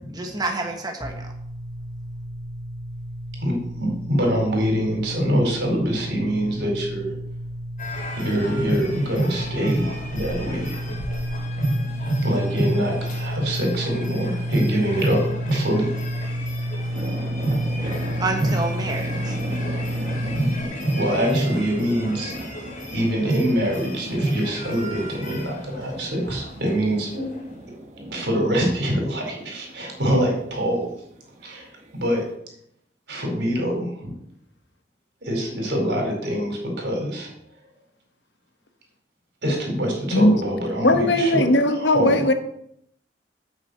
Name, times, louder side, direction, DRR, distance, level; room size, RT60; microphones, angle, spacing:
voice 1, 0.1-1.3 18.2-19.4, right 3 dB, 25° right, 2 dB, 1.4 m, -28 dB
sound 1, 1.0-20.6, equal, ahead, 1.1 m, -31 dB
voice 2, 3.4-7.1 8.2-11.0 12.2-15.2 15.5-15.9 20.4-20.5 20.9-22.3 22.9-27.3 28.1-30.9 31.4-31.7 31.9-32.2 33.1-34.1 35.2-37.3 39.4-42.2, equal, 75° right, 0 dB, 4.6 m, -25 dB
sound 2, 7.8-27.5, right 1 dB, 45° left, 2.8 m, -30 dB
sound 3, 16.0-32.3, right 1 dB, 40° right, 1.5 m, -38 dB
voice 3, 40.8-42.3, left 1 dB, 80° left, 8 dB, 1.3 m, -18 dB
9.1 x 6.4 x 8.0 m, 0.72 s
head